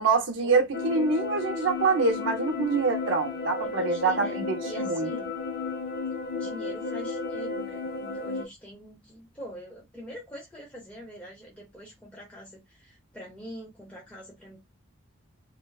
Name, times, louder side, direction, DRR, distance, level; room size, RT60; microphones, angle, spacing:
voice 1, 0.0-5.1, right 4 dB, 70° right, 0.6 m, -25 dB
sound 1, 0.7-8.4, left 4 dB, 45° left, 0.4 m, -33 dB
voice 2, 3.6-5.3 6.3-14.6, equal, 5° left, 0.7 m, -44 dB
2.5 x 2.2 x 2.2 m
head